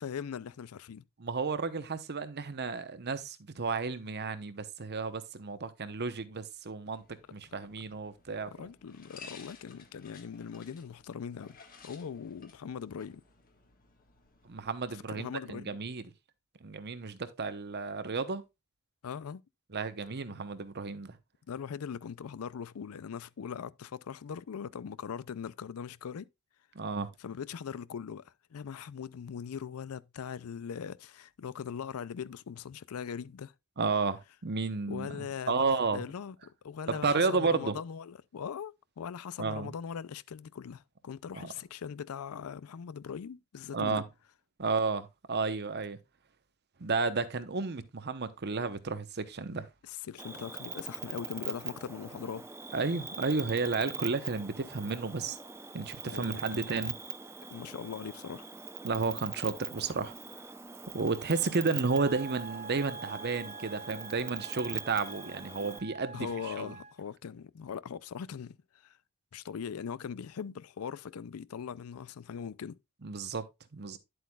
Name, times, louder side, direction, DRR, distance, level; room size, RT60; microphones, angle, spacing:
voice 1, 0.0-1.0 8.5-11.6 11.8-13.2 14.9-15.8 19.0-19.4 20.3-20.4 21.5-26.3 27.2-33.5 34.9-36.4 36.6-44.0 49.8-52.5 56.1-56.7 57.5-58.5 66.1-68.6 68.8-68.9 69.3-72.8, left 7 dB, 75° left, 0.4 m, -40 dB
voice 2, 1.2-7.0 7.3-8.5 14.4-16.0 16.6-18.4 19.7-21.2 26.7-27.1 33.8-36.0 36.9-37.8 39.4-39.7 41.3-41.5 43.7-44.0 44.6-46.0 46.8-49.7 52.7-55.4 55.7-57.0 58.8-60.1 60.9-66.3 66.6-66.7 73.0-73.4 73.7-74.0, right 4 dB, 50° right, 0.9 m, -32 dB
sound 1, 7.0-14.9, left 5 dB, 40° left, 1.5 m, -56 dB
Cricket, 50.2-65.8, right 5 dB, 10° right, 0.6 m, -42 dB
Wind instrument woodwind instrument, 61.8-67.1, right 5 dB, 30° right, 1.2 m, -46 dB
10.5 x 7.9 x 2.3 m
head